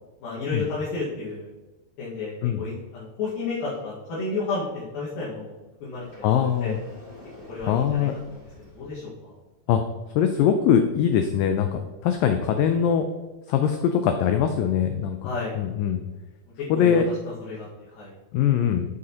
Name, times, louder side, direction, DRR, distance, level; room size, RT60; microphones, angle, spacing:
voice 1, 0.2-1.5 2.0-6.8 7.5-9.3 15.2-15.6 16.7-17.7 17.9-18.1, left 3 dB, 65° left, -8 dB, 3.2 m, -32 dB
Sliding door, 5.9-8.9, equal, 15° left, 1.7 m, -47 dB
voice 2, 6.2-6.8 7.7-8.1 9.7-9.8 10.2-13.1 13.5-15.3 15.6-16.0 16.7-17.0 18.3-18.9, left 8 dB, 90° left, 7 dB, 2.0 m, -22 dB
8.0 x 7.6 x 2.9 m, 1.2 s
omnidirectional pair, 4.6 m